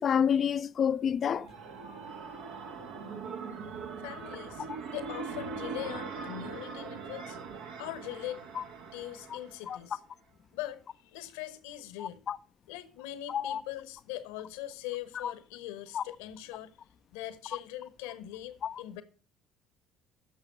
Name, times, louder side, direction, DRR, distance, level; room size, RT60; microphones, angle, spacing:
voice 1, 0.0-1.5 8.6-8.7 9.7-9.8 12.0-12.4 13.3-13.6 15.9-16.0 18.6-18.7, left 8 dB, 45° left, 0.5 m, -28 dB
sound 1, 1.1-9.9, right 5 dB, 75° right, 1.8 m, -41 dB
voice 2, 4.0-7.4 7.8-8.4 8.9-10.0 10.5-12.2 12.7-16.7 17.1-19.0, left 13 dB, 75° left, 1.1 m, -41 dB
10.5 x 6.5 x 6.7 m
hypercardioid pair, 65°, 0 cm